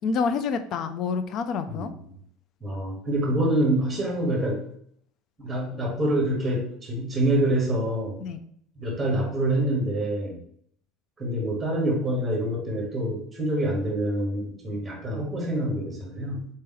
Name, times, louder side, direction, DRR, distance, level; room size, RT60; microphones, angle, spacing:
voice 1, 0.0-1.9 8.2-8.4, left 5 dB, 35° left, 10 dB, 0.3 m, -27 dB
voice 2, 1.7-2.2 2.6-4.6 5.4-8.2 8.7-10.4 11.2-16.4, right 1 dB, 10° right, -1 dB, 1.1 m, -26 dB
4.2 x 3.0 x 3.7 m, 0.64 s
cardioid pair, 175°, 0 cm